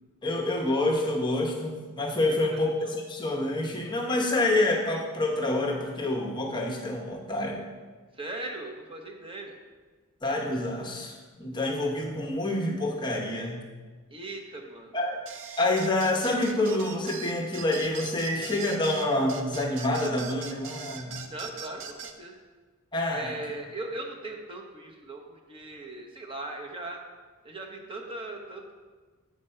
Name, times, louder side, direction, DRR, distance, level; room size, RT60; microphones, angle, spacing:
voice 1, 0.2-7.6 10.2-13.6 14.9-15.2 15.6-21.2 22.9-23.3, left 2 dB, 20° left, -1 dB, 0.9 m, -27 dB
voice 2, 8.2-9.5 14.1-14.9 21.3-22.3 23.1-27.0 27.4-28.7, right 2 dB, 25° right, 1 dB, 0.9 m, -39 dB
sound 1, 15.3-22.2, right 6 dB, 60° right, 0.5 m, -41 dB
7.7 x 5.1 x 4.3 m, 1.4 s
head